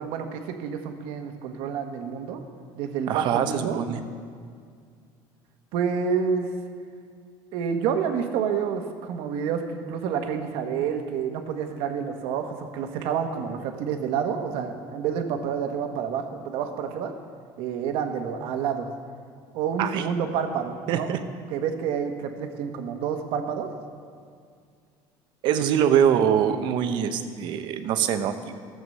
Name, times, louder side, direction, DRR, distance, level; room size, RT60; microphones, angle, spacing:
voice 1, 0.0-2.4 2.8-3.8 5.7-6.5 7.5-17.1 17.6-18.9 19.5-21.1 21.5-23.7 25.5-25.6, right 7 dB, 75° right, 5 dB, 1.3 m, -28 dB
voice 2, 3.1-4.0 19.8-20.1 20.9-21.2 25.4-28.6, right 9 dB, 55° right, 9 dB, 0.9 m, -23 dB
14.0 x 7.9 x 6.6 m, 2.1 s
cardioid pair, 160°, 9 cm